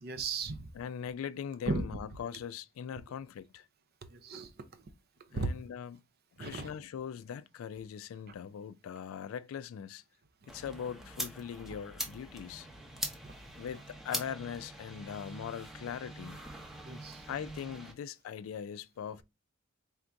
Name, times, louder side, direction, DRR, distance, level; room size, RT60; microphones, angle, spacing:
voice 1, 0.0-0.7 1.7-1.8 4.1-4.5 5.3-5.5 6.4-6.7 13.2-13.4 16.8-17.2, right 3 dB, 50° right, 0.6 m, -36 dB
voice 2, 0.7-3.7 5.3-6.0 6.4-10.0 10.5-12.7 13.6-16.4 17.3-19.2, left 8 dB, 80° left, 0.3 m, -41 dB
sound 1, 10.5-17.9, equal, ahead, 0.7 m, -43 dB
3.5 x 2.5 x 4.4 m
head